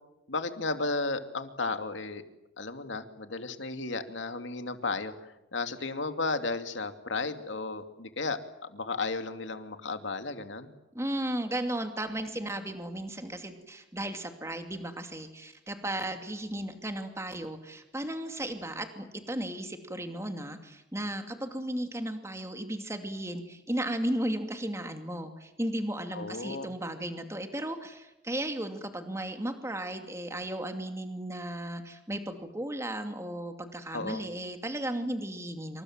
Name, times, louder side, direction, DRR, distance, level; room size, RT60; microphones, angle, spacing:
voice 1, 0.3-2.2 2.6-8.4 8.7-10.7 26.1-26.7 33.9-34.3, left 3 dB, 90° left, 8 dB, 2.4 m, -34 dB
voice 2, 10.9-35.8, right 1 dB, 15° right, 6 dB, 2.6 m, -35 dB
27.5 x 26.0 x 7.5 m, 0.93 s
head